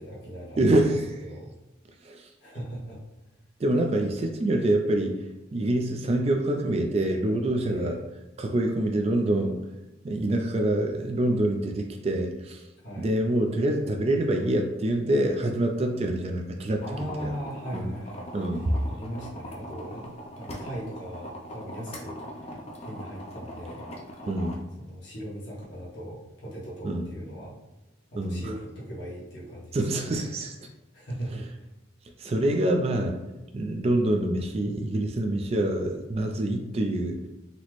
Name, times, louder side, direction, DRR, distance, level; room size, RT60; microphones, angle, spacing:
voice 1, 0.0-0.7 1.2-1.5 2.4-3.0 7.7-8.0 12.8-13.1 16.8-20.1 20.4-22.5 22.8-23.9 24.8-27.6 28.1-30.3 30.9-31.5, equal, 60° left, -7 dB, 1.0 m, -39 dB
voice 2, 0.6-1.1 2.0-2.3 3.6-5.2 5.5-8.0 8.4-9.6 10.0-12.6 13.0-16.8 17.2-17.3 17.7-17.9 18.3-18.7 24.3-24.6 26.8-27.0 28.1-28.5 29.7-30.7 32.2-33.2 33.5-37.2, right 1 dB, 30° right, 3 dB, 0.3 m, -26 dB
sound 1, 16.8-24.6, equal, 30° left, 0.5 m, -41 dB
4.0 x 2.0 x 3.0 m, 1.1 s
head